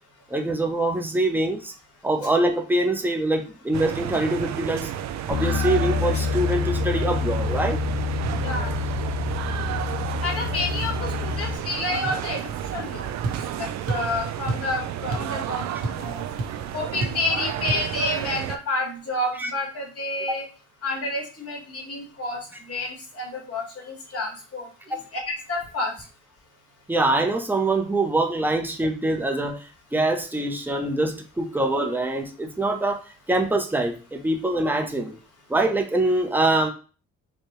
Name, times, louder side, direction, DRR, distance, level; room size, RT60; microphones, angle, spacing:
voice 1, 0.3-1.7 2.0-4.9 5.3-7.8 19.4-19.5 20.3-20.4 26.9-33.0 33.3-35.1 35.5-36.7, right 2 dB, 5° right, 5 dB, 0.7 m, -24 dB
sound 1, 3.7-18.6, right 10 dB, 65° right, 0.5 m, -31 dB
Bass guitar, 5.3-11.5, left 6 dB, 35° left, 0.7 m, -27 dB
voice 2, 8.4-8.8 10.2-16.3 16.7-20.5 20.8-22.4 22.7-25.9, left 2 dB, 50° left, -1 dB, 1.7 m, -30 dB
sound 2, 13.2-13.4 13.9-14.1 14.5-14.7 15.1-15.4 15.6-16.1 16.4-16.5 17.0-17.2 17.7-17.9, right 2 dB, 50° right, 1.1 m, -28 dB
4.6 x 2.2 x 3.1 m, 0.36 s
cardioid pair, 90°, 30 cm